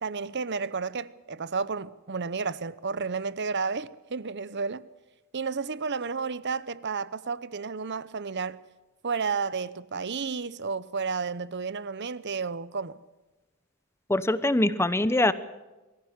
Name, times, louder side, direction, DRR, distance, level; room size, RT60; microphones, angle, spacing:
voice 1, 0.0-4.9 5.3-8.6 9.0-13.0, right 5 dB, 50° right, 0.8 m, -32 dB
voice 2, 14.1-15.3, left 1 dB, 10° left, 0.9 m, -23 dB
23.0 x 15.5 x 8.0 m
head